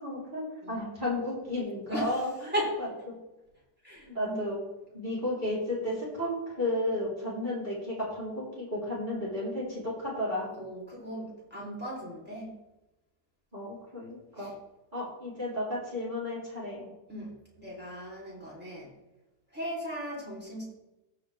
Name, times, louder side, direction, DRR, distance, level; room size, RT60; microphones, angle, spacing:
voice 1, 0.0-2.5 3.1-3.2 4.1-4.6 4.9-10.5 13.5-14.5 14.9-16.9, left 1 dB, 25° right, -7 dB, 3.9 m, -33 dB
voice 2, 1.9-2.2 2.5-2.8 3.8-4.5 10.5-12.5 14.4-14.5 17.1-18.9 19.5-20.6, equal, 5° right, -5 dB, 3.5 m, -37 dB
14.5 x 5.5 x 3.5 m, 0.98 s
omnidirectional pair, 1.9 m